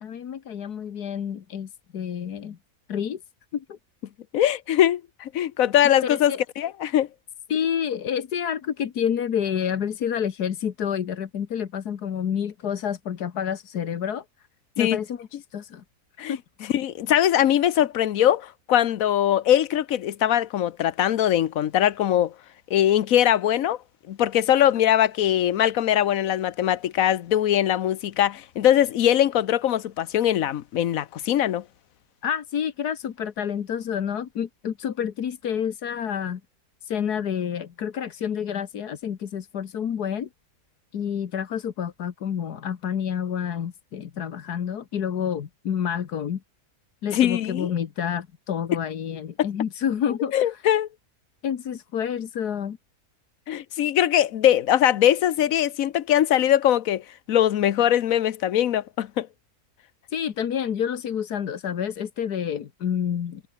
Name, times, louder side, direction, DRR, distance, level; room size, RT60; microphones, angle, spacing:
voice 1, 0.0-2.6 2.9-3.2 3.5-3.8 6.1-6.4 7.5-14.2 14.8-15.8 16.3-16.4 32.2-36.4 36.8-40.3 40.9-46.4 47.0-50.6 51.4-52.8 60.1-63.4, left 8 dB, 85° left, 1.8 m, -29 dB
voice 2, 4.3-7.1 14.8-15.0 16.2-16.4 16.7-22.3 22.7-23.8 24.1-31.6 47.1-47.7 49.4-49.5 50.3-50.9 53.5-57.0 57.3-59.3, left 11 dB, 65° left, 1.2 m, -21 dB
omnidirectional pair, 1.6 m